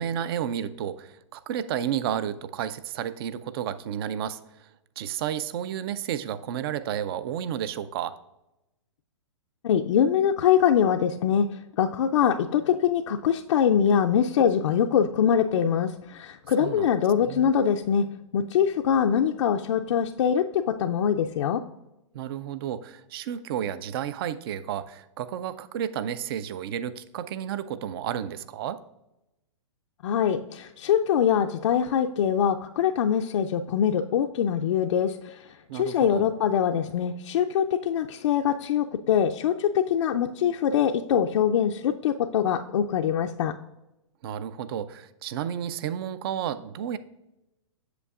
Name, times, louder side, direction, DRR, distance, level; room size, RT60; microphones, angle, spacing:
voice 1, 0.0-4.7 5.0-8.2 16.6-17.5 22.1-28.8 35.7-36.3 44.2-47.0, right 9 dB, 50° right, 14 dB, 0.5 m, -32 dB
voice 2, 9.6-11.5 11.8-18.0 18.3-21.6 30.0-35.4 35.7-43.5, left 8 dB, 65° left, 4 dB, 0.4 m, -23 dB
8.1 x 6.9 x 2.4 m, 0.93 s
hypercardioid pair, 130°, 16 cm